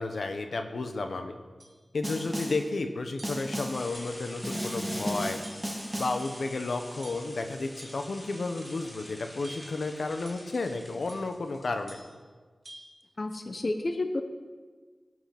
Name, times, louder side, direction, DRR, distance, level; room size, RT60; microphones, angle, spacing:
voice 1, 0.0-1.4 1.9-5.4 6.0-12.0, left 3 dB, 75° left, 6 dB, 1.1 m, -32 dB
sound 1, 1.6-1.8 2.4-2.7 3.2-3.6 3.9-4.3 4.7-4.8 5.4-5.8 6.2-6.6 7.0-7.3 7.8-8.1 8.6-8.9 9.4-9.8 10.3-10.5 11.1-11.3 11.9-12.2 12.6-12.9, right 1 dB, 35° right, 3.1 m, -50 dB
Snare drum, 2.0-2.7 3.2-3.9 4.4-6.3, equal, 10° right, 1.6 m, -34 dB
sound 2, 3.7-12.0, left 1 dB, 30° left, 2.8 m, -47 dB
voice 2, 13.2-14.2, left 2 dB, 50° left, 7 dB, 0.9 m, -30 dB
17.5 x 7.9 x 6.0 m, 1.4 s
wide cardioid pair, 60°, 0 cm